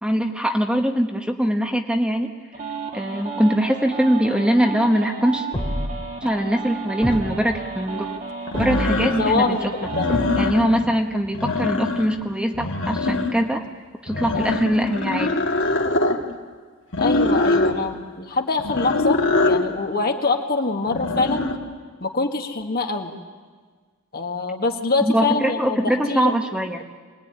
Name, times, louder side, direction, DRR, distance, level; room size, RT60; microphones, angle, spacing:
voice 1, 0.0-2.3 2.9-5.4 6.2-8.1 8.6-9.7 10.4-15.4 25.0-26.8, equal, 5° right, 3 dB, 1.2 m, -22 dB
sound 1, 2.5-10.5, right 4 dB, 40° right, 3.2 m, -33 dB
sound 2, 5.5-6.1 7.0-7.6 8.5-9.2 10.1-10.7, equal, 15° left, 3.5 m, -28 dB
sound 3, 7.1-7.2 8.5-9.4 9.8-10.9 11.2-12.2 12.5-13.5 14.1-16.2 16.9-17.8 18.6-19.7 20.9-21.6, left 2 dB, 60° left, 2.3 m, -23 dB
voice 2, 9.0-10.3 14.3-14.6 17.0-21.5 22.0-23.1 24.1-26.4, left 3 dB, 45° left, 4 dB, 2.0 m, -25 dB
25.0 x 19.5 x 10.0 m, 1.5 s
head